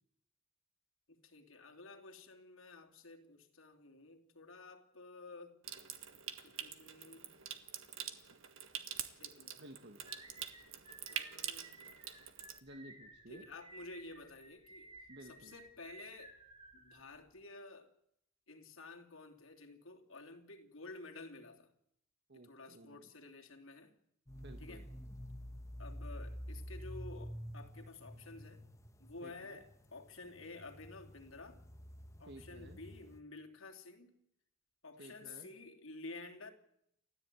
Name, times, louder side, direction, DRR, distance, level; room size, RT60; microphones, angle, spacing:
voice 1, 1.1-5.6 6.4-7.4 9.2-9.6 11.1-11.8 13.3-14.9 15.3-16.3 16.7-17.9 18.5-21.7 22.3-23.9 24.6-24.9 25.8-28.6 29.0-31.6 32.2-34.2 34.8-36.5, left 3 dB, 85° left, 2.9 m, -52 dB
Water tap faucet / Sink (filling or washing) / Trickle dribble, 5.6-12.6, right 9 dB, 80° right, 1.6 m, -45 dB
voice 2, 9.6-10.0 12.6-13.5 15.1-15.6 22.3-23.1 24.4-24.9 29.2-29.6 32.3-32.8 35.0-35.5, right 1 dB, 55° right, 1.7 m, -54 dB
sound 1, 10.0-17.4, right 2 dB, 25° right, 4.0 m, -57 dB
sound 2, 24.3-33.2, equal, 15° left, 1.0 m, -49 dB
29.5 x 13.5 x 9.2 m
head